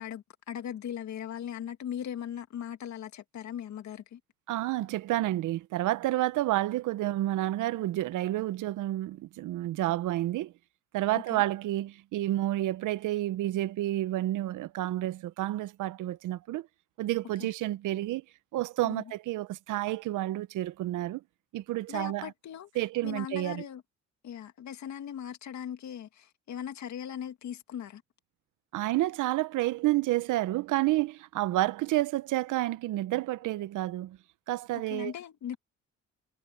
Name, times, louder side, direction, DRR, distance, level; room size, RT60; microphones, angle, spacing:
voice 1, 0.0-4.2 11.3-11.4 17.4-17.5 18.8-19.0 21.9-23.8 24.2-28.0 34.7-35.6, left 9 dB, 70° left, 2.3 m, -39 dB
voice 2, 4.5-10.5 10.9-16.7 17.0-18.2 18.5-21.2 21.5-22.3 22.8-23.6 28.7-34.2 34.5-35.1, right 15 dB, 80° right, 0.8 m, -30 dB
cardioid pair, 90°, 30 cm